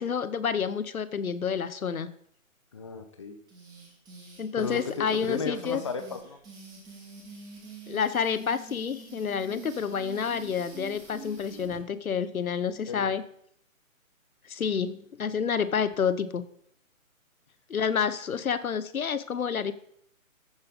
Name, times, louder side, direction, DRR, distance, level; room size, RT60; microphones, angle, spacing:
voice 1, 0.0-2.1 4.4-5.8 7.9-13.2 14.5-16.4 17.7-19.7, left 6 dB, 80° left, 14 dB, 0.8 m, -29 dB
voice 2, 2.7-3.4 4.6-6.4 12.9-13.1, left 5 dB, 25° left, 7 dB, 0.6 m, -34 dB
sound 1, 3.5-11.8, right 3 dB, 10° right, 1.2 m, -46 dB
14.5 x 5.5 x 3.5 m, 0.64 s
figure-of-eight pair, 145°, 42 cm